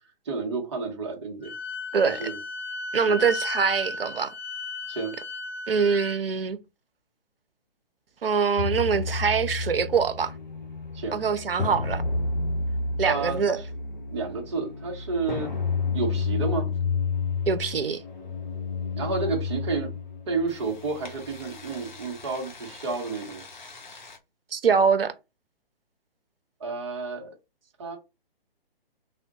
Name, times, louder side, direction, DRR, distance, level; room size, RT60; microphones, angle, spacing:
voice 1, 0.3-1.5 2.0-2.4 3.1-3.2 4.9-5.1 10.9-11.2 13.0-13.6 14.1-15.5 15.9-16.7 18.9-19.9 20.3-23.4 26.6-27.3 27.8-28.0, right 4 dB, 30° right, 0.7 m, -30 dB
Wind instrument woodwind instrument, 1.4-6.2, left 2 dB, 90° left, 0.6 m, -35 dB
voice 2, 2.9-4.3 5.7-6.6 8.2-10.3 11.1-12.0 13.0-13.6 17.5-18.0 24.5-25.1, right 6 dB, 70° right, 0.6 m, -24 dB
sound 1, 8.6-24.2, left 4 dB, 50° left, 0.9 m, -31 dB
3.4 x 2.1 x 2.6 m
figure-of-eight pair, 135°, 30 cm